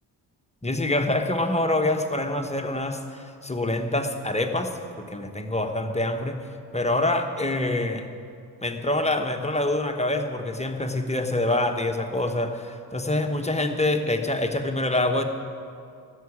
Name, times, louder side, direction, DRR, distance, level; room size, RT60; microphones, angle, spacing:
voice 1, 0.6-6.4 6.7-8.1 8.6-15.2, left 1 dB, 15° left, 4 dB, 1.2 m, -26 dB
14.0 x 7.3 x 9.8 m, 2.4 s
supercardioid pair, 55°, 44 cm